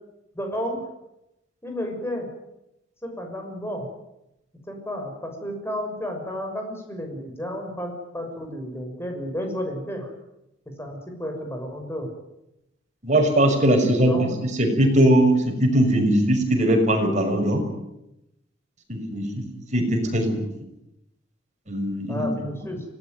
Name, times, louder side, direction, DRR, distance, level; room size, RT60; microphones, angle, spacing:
voice 1, 0.3-0.8 1.6-2.3 3.0-3.9 4.7-10.1 10.7-12.1 14.0-14.3 22.1-22.8, equal, 15° left, 3 dB, 6.4 m, -32 dB
voice 2, 13.0-17.6 18.9-19.3 19.7-20.4 21.7-22.3, right 1 dB, 40° right, 3 dB, 6.3 m, -20 dB
25.0 x 18.5 x 9.4 m, 0.87 s
head